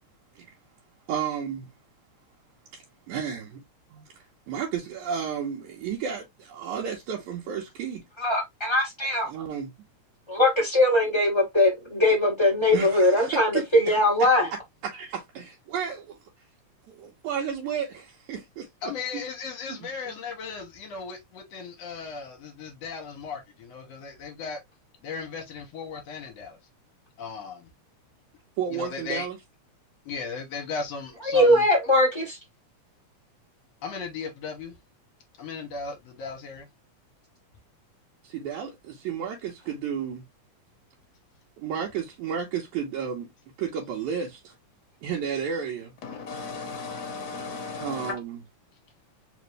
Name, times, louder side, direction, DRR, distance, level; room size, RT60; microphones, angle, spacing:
voice 1, 1.1-1.7 2.7-3.6 3.9-8.0 9.2-9.7 12.7-13.9 14.8-16.2 16.9-19.2 19.7-20.1 28.6-29.4 38.2-40.2 41.6-43.3 43.6-44.5 45.0-45.9 47.8-48.4, right 7 dB, 85° right, 2.3 m, -32 dB
voice 2, 8.2-9.3 10.3-14.5 31.2-32.4, left 1 dB, 20° left, 0.8 m, -21 dB
voice 3, 18.8-24.6 25.0-26.6 27.2-27.7 28.7-29.3 30.1-31.6 33.8-34.8 35.4-36.7, left 5 dB, 65° left, 1.9 m, -36 dB
voice 4, 46.0-48.1, left 4 dB, 40° left, 1.5 m, -35 dB
5.0 x 2.6 x 3.1 m
omnidirectional pair, 3.4 m